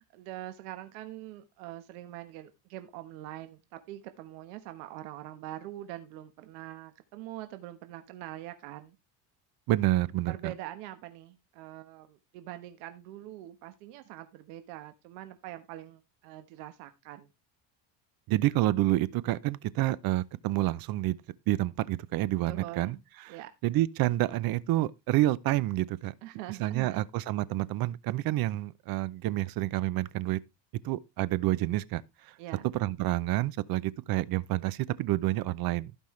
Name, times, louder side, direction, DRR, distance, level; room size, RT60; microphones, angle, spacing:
voice 1, 0.1-9.0 10.3-17.3 22.5-23.0 23.3-23.5 26.2-27.0 32.4-32.7, right 14 dB, 80° right, 1.4 m, -43 dB
voice 2, 9.7-10.5 18.3-21.2 21.5-23.0 23.2-23.4 23.6-26.1 26.6-30.4 30.8-32.3 32.8-35.9, right 16 dB, 45° right, 0.6 m, -28 dB
16.0 x 5.5 x 3.2 m
cardioid pair, 135°, 49 cm